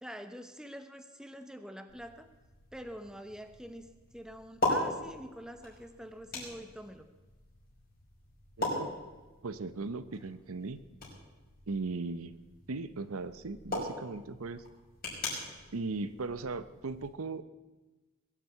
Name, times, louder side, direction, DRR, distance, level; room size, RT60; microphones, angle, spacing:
voice 1, 0.0-2.3 2.7-7.1, equal, 5° right, 8 dB, 0.8 m, -46 dB
sound 1, 1.9-17.1, left 1 dB, 40° left, 5.7 m, -40 dB
voice 2, 8.6-9.0 9.4-10.8 11.7-12.4 12.7-14.6 15.7-17.5, right 3 dB, 80° right, 13 dB, 0.7 m, -37 dB
21.5 x 7.5 x 8.1 m, 1.2 s
head